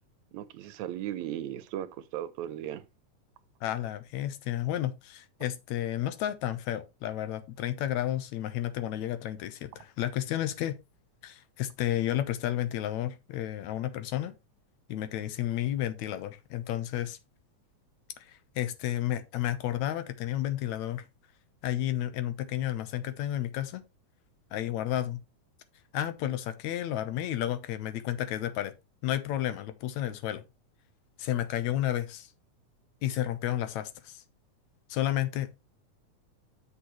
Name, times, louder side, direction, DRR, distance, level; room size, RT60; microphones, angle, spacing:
voice 1, 0.3-2.9, right 12 dB, 80° right, 1.9 m, -37 dB
voice 2, 3.6-10.8 11.2-14.3 14.9-17.2 18.2-21.1 21.6-23.8 24.5-25.2 25.9-28.7 29.0-30.4 31.2-32.3 33.0-34.2 34.9-35.6, left 12 dB, 75° left, 2.1 m, -32 dB
8.5 x 6.3 x 3.1 m
omnidirectional pair, 3.4 m